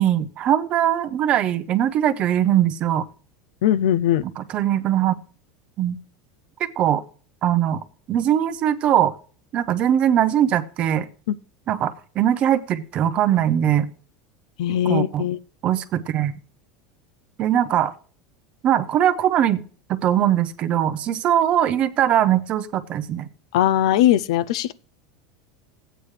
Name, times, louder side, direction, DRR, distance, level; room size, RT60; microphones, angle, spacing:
voice 1, 0.0-3.1 4.2-5.1 5.8-6.0 6.6-7.0 7.4-7.8 8.1-9.1 9.5-11.1 11.7-13.9 14.7-15.3 15.6-16.3 17.4-17.9 18.6-19.6 19.9-23.3, right 10 dB, 35° right, 0.6 m, -21 dB
voice 2, 3.6-4.2 11.3-11.4 14.6-15.4 23.5-24.7, left 11 dB, 80° left, 0.4 m, -20 dB
15.0 x 8.9 x 3.2 m
supercardioid pair, 150°, 3 cm